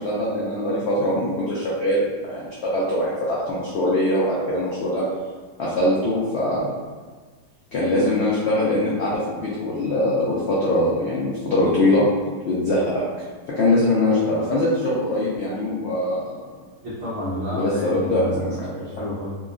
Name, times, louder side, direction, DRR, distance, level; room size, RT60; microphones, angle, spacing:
voice 1, 0.0-2.0 2.3-5.0 5.6-6.7 7.7-12.1 12.4-13.0 13.6-16.3 17.5-18.8, left 1 dB, 80° left, -7 dB, 0.6 m, -22 dB
voice 2, 16.8-19.3, left 1 dB, 70° right, -10 dB, 0.5 m, -30 dB
2.8 x 2.3 x 2.4 m, 1.4 s
omnidirectional pair, 1.8 m